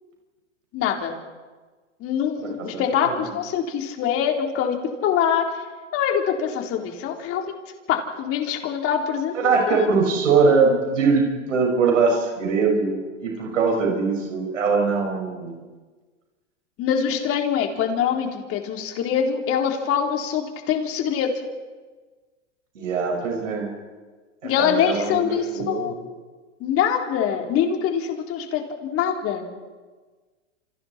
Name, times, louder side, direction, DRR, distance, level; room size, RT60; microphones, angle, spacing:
voice 1, 0.7-1.1 2.0-4.8 5.0-5.4 5.9-7.5 7.9-9.9 16.8-21.3 24.4-26.0 26.6-29.5, left 8 dB, 35° left, 2 dB, 3.9 m, -24 dB
voice 2, 2.7-3.2 9.3-11.2 11.5-15.6 22.7-23.7 24.4-25.2 25.5-25.9, right 4 dB, 85° right, 0 dB, 6.0 m, -22 dB
29.0 x 29.0 x 4.4 m, 1.4 s
hypercardioid pair, 120°, 37 cm